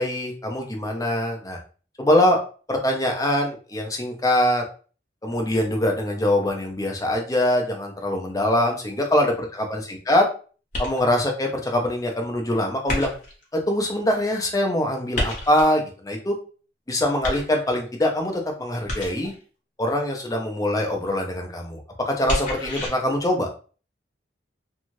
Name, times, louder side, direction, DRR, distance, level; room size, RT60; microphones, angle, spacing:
voice 1, 0.0-1.6 2.0-2.4 2.7-4.6 5.2-10.3 10.8-13.1 13.5-16.3 16.9-19.3 19.8-23.5, left 1 dB, 20° left, 1 dB, 0.5 m, -23 dB
sound 1, 10.7-11.3 12.9-13.5 15.1-15.8 17.2-17.9 18.9-19.4 22.3-22.9, left 1 dB, 40° left, 1.0 m, -29 dB
2.6 x 2.3 x 3.0 m, 0.38 s
head